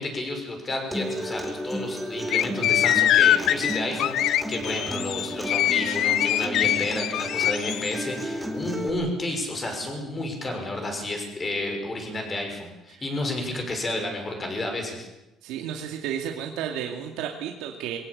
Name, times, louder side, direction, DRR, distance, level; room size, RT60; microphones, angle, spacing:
voice 1, 0.0-15.1, left 1 dB, 20° left, 3 dB, 6.1 m, -31 dB
Acoustic guitar, 0.9-8.9, equal, ahead, 2.7 m, -33 dB
sound 1, 2.3-7.9, left 12 dB, 60° left, 0.8 m, -23 dB
voice 2, 15.4-18.0, right 9 dB, 90° right, 2 dB, 2.4 m, -32 dB
23.0 x 17.5 x 8.7 m, 0.98 s
cardioid pair, 150°, 0 cm